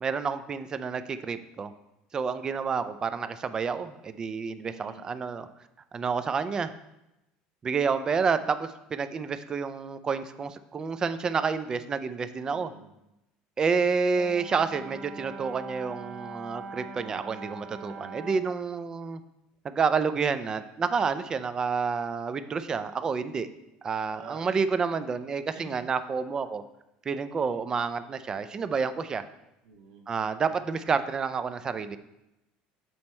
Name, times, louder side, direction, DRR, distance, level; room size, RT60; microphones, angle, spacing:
voice 1, 0.0-1.7 2.1-5.5 5.9-6.7 7.6-12.7 13.6-19.2 19.6-23.5 23.8-26.6 27.1-29.2 30.1-32.0, right 5 dB, 25° right, 11 dB, 0.4 m, -29 dB
voice 2, 4.6-5.1 12.5-12.9 24.0-24.4 25.5-25.8 29.6-30.1, right 4 dB, 75° right, 1 dB, 1.6 m, -47 dB
Brass instrument, 14.1-18.5, right 3 dB, 50° right, 1.6 m, -42 dB
7.8 x 4.2 x 4.3 m, 0.90 s
cardioid pair, 145°, 3 cm